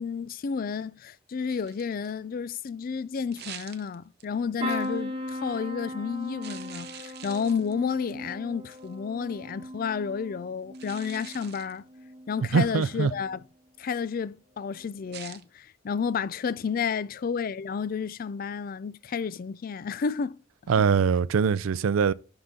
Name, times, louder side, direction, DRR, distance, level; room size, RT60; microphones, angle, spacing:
voice 1, 0.0-11.8 12.3-13.4 13.8-20.3, left 6 dB, 45° left, 0.3 m, -31 dB
sound 1, 1.5-2.2 3.3-4.3 4.7-5.0 6.4-7.9 8.7-8.9 10.7-11.8 15.1-15.4, right 10 dB, 55° right, 0.7 m, -45 dB
sound 2, 4.6-12.4 12.9-13.4 14.7-14.9 15.1-15.2, equal, 30° right, 1.2 m, -38 dB
voice 2, 12.5-13.1 20.7-22.1, right 6 dB, 90° right, 0.4 m, -22 dB
11.5 x 3.9 x 3.7 m
head